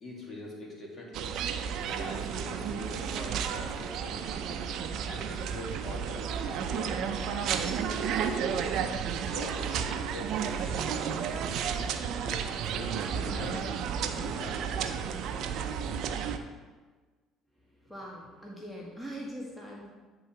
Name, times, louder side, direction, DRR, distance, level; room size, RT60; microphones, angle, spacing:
voice 1, 0.0-1.3 1.8-4.2 5.1-8.7 9.2-11.3 12.2-13.8 14.1-15.1, left 1 dB, 40° left, -2 dB, 2.2 m, -43 dB
sound 1, 1.1-16.4, right 7 dB, 65° right, 0.5 m, -32 dB
voice 2, 17.6-19.9, equal, ahead, -4 dB, 1.4 m, -42 dB
9.5 x 3.8 x 4.4 m, 1.4 s
supercardioid pair, 80°, 0 cm